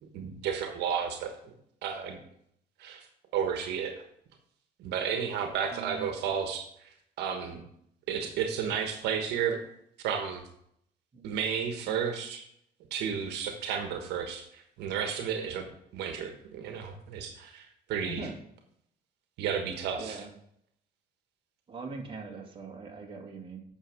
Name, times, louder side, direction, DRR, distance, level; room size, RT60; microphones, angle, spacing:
voice 1, 0.1-1.5 1.8-2.2 2.8-3.1 3.3-4.0 4.8-6.9 7.2-7.6 8.1-9.6 10.0-10.4 11.2-12.4 12.9-15.7 15.9-18.2 19.4-20.2, right 7 dB, 80° right, 5 dB, 1.3 m, -32 dB
voice 2, 5.7-6.1 11.1-11.4 18.0-18.3 20.0-20.3 21.7-23.6, right 4 dB, 30° right, 0 dB, 2.1 m, -41 dB
8.9 x 6.2 x 4.9 m, 0.71 s
cardioid pair, 110°, 17 cm